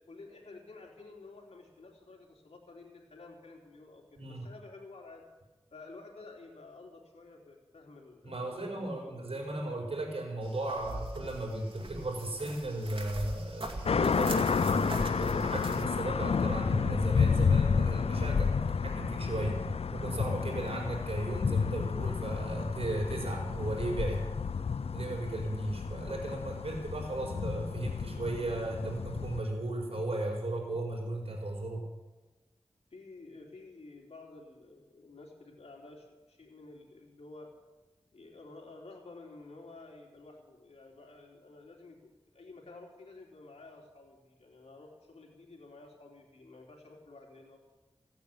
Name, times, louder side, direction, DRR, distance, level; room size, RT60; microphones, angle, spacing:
voice 1, 0.0-5.2 5.7-9.3 32.9-37.5 38.1-47.6, left 3 dB, 85° left, 0 dB, 3.4 m, -51 dB
voice 2, 4.2-4.5 8.2-19.6 19.9-24.3 24.9-31.9, right 1 dB, 70° right, 0 dB, 4.8 m, -35 dB
sound 1, 10.4-15.9, right 2 dB, 55° right, 2.3 m, -43 dB
sound 2, 13.9-29.4, left 5 dB, 70° left, 0.4 m, -31 dB
16.0 x 9.0 x 9.4 m, 1.2 s
wide cardioid pair, 50°, 11 cm